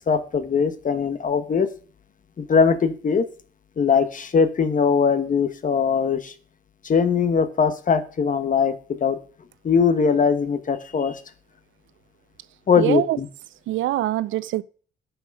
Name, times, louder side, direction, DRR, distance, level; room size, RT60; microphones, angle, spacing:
voice 1, 0.1-1.7 2.4-3.3 3.8-6.3 6.8-9.2 9.6-11.2 12.7-13.3, left 6 dB, 40° left, 1.2 m, -21 dB
voice 2, 12.8-13.2 13.7-14.6, right 14 dB, 75° right, 0.5 m, -23 dB
10.0 x 6.1 x 5.3 m
cardioid pair, 90°, 20 cm